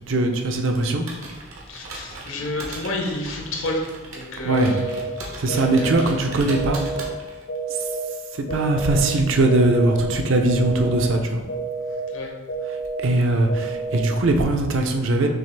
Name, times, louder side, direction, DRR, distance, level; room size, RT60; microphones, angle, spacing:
voice 1, 0.1-1.1 4.4-4.7 5.4-6.8 7.7-7.9 8.3-11.4 12.7-15.3, right 2 dB, 65° right, 4 dB, 0.5 m, -21 dB
Computer keyboard, 0.7-7.6, right 2 dB, 85° right, 0.9 m, -38 dB
voice 2, 1.7-3.8 4.1-5.0 5.5-6.1 12.1-12.3, left 2 dB, 70° left, 0 dB, 0.8 m, -30 dB
sound 1, 4.5-5.0 5.5-6.0 6.5-7.0 7.5-8.0 8.5-9.0 9.5-10.0 10.5-11.0 11.5-12.0 12.5-13.0 13.5-14.0, right 4 dB, 45° left, 0.4 m, -29 dB
6.1 x 2.4 x 3.3 m, 1.3 s
head